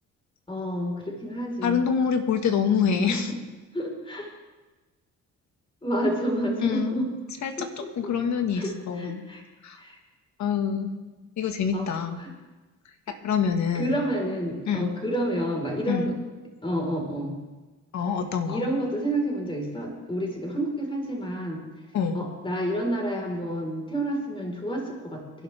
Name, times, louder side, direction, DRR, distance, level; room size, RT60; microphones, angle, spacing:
voice 1, 0.5-1.8 2.9-3.4 3.7-4.3 5.8-7.1 7.6-8.1 8.5-9.4 9.8-10.0 11.7-12.3 13.7-16.2 16.6-17.4 18.5-21.6 22.1-25.4, equal, 15° left, 0 dB, 4.5 m, -29 dB
voice 2, 1.6-3.3 6.6-7.1 7.4-7.7 8.0-9.2 9.6-9.8 10.4-10.9 11.4-12.2 13.2-14.0 14.7-14.9 15.9-16.1 17.9-18.6 21.9-22.2, left 6 dB, 70° left, 6 dB, 1.8 m, -26 dB
26.0 x 11.5 x 3.5 m, 1.2 s
cardioid pair, 90°, 30 cm